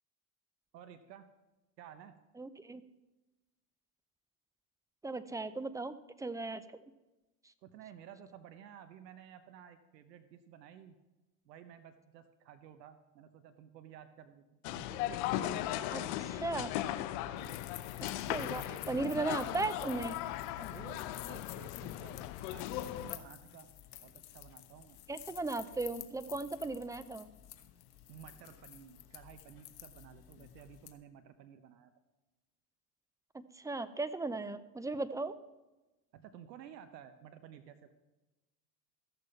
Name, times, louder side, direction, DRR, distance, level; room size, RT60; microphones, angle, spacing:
voice 1, 0.7-1.3 1.8-2.1 7.6-10.9 11.5-16.4 17.3-17.6 18.2-19.2 20.6-25.0 28.1-31.9 36.1-37.9, right 9 dB, 85° right, 9 dB, 1.0 m, -54 dB
voice 2, 2.4-2.8 5.0-6.8 15.9-16.0 16.4-16.7 18.0-20.1 25.1-27.3 33.3-35.3, right 3 dB, 5° right, 14 dB, 0.6 m, -37 dB
sound 1, 14.6-23.2, left 13 dB, 65° left, 0.9 m, -38 dB
sound 2, 17.4-30.9, left 14 dB, 50° left, 1.3 m, -52 dB
14.5 x 6.8 x 5.7 m, 1.1 s
hypercardioid pair, 85°, 49 cm